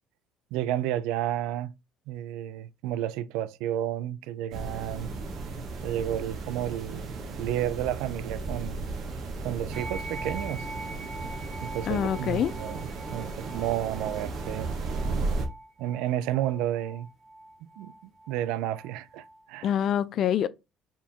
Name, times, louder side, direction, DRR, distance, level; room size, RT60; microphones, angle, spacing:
voice 1, 0.5-1.7 2.1-5.1 5.8-7.1 7.4-8.9 9.4-10.7 11.6-14.7 15.8-17.1 17.6-19.7, right 12 dB, 85° right, 0.3 m, -31 dB
sound 1, 4.5-15.5, right 3 dB, 45° right, 0.9 m, -35 dB
sound 2, 9.7-19.4, right 2 dB, 25° right, 1.4 m, -44 dB
voice 2, 11.9-12.5 19.6-20.5, left 9 dB, 40° left, 0.3 m, -25 dB
4.2 x 3.6 x 2.8 m
cardioid pair, 170°, 0 cm